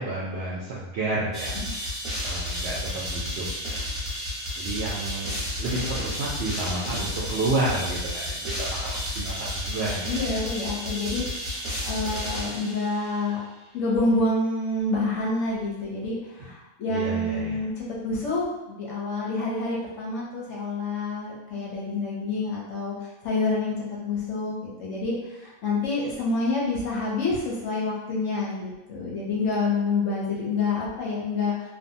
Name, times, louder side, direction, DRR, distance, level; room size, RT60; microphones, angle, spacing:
voice 1, 0.0-1.9 2.2-3.8 4.6-5.3 5.6-10.4 16.9-17.6, right 2 dB, 65° right, -7 dB, 0.6 m, -30 dB
sound 1, 1.3-13.2, equal, 25° right, 0.8 m, -32 dB
voice 2, 10.1-13.4 13.7-23.7 24.0-24.5 24.8-31.7, left 3 dB, 65° left, -4 dB, 0.8 m, -28 dB
2.6 x 2.2 x 2.6 m, 0.98 s
omnidirectional pair, 1.5 m